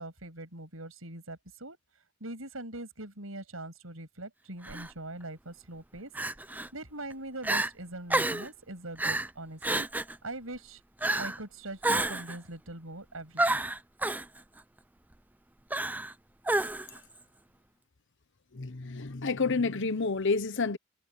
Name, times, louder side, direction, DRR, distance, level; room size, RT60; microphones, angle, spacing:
voice 1, 0.0-1.8 2.2-6.1 6.7-9.9 10.2-10.8 11.2-13.6, right 2 dB, 75° right, 7.8 m, -42 dB
Crying sobbing, 4.6-4.9 6.2-6.7 7.1-7.2 7.4-7.7 8.1-8.5 9.0-9.3 9.6-10.2 11.0-11.4 11.8-12.4 13.4-14.3 15.7-16.1 16.5-17.0, right 2 dB, 10° right, 0.6 m, -29 dB
voice 2, 18.5-20.8, left 4 dB, 60° left, 1.1 m, -29 dB
head